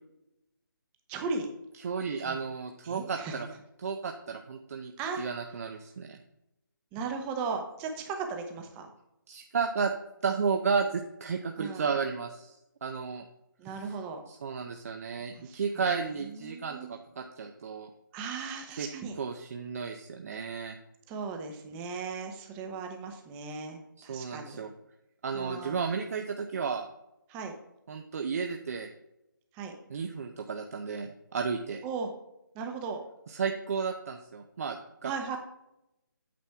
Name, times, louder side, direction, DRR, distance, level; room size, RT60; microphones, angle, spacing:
voice 1, 1.1-1.5 2.2-2.4 2.8-3.3 5.0-5.2 6.9-8.9 11.6-11.9 13.6-14.2 15.4-15.6 16.3-17.0 18.1-19.2 21.1-24.6 25.3-25.9 27.3-27.5 29.5-29.7 31.8-32.1 32.5-33.0 35.0-35.4, right 5 dB, 15° right, 4 dB, 0.7 m, -37 dB
voice 2, 1.8-3.5 3.8-4.9 5.2-6.2 9.3-9.9 10.2-12.5 12.8-13.2 14.3-17.9 18.8-18.9 19.2-20.8 24.0-24.7 25.2-26.9 27.9-28.9 29.9-31.8 33.3-35.4, right 5 dB, 45° right, 4 dB, 0.5 m, -33 dB
8.5 x 5.9 x 3.4 m, 0.88 s
hypercardioid pair, 160°, 12 cm